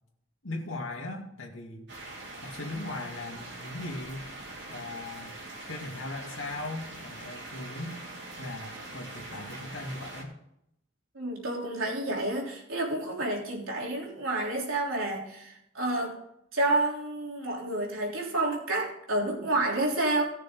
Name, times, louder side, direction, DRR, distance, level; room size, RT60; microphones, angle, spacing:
voice 1, 0.4-1.9 2.4-4.3 4.7-5.3 5.7-8.0 8.4-10.3, left 2 dB, 65° left, 1 dB, 2.3 m, -38 dB
sound 1, 1.9-10.2, right 2 dB, 55° right, 3.3 m, -43 dB
voice 2, 11.1-16.2 16.5-20.2, right 2 dB, 75° right, -2 dB, 3.3 m, -29 dB
18.5 x 6.7 x 3.8 m, 0.78 s
head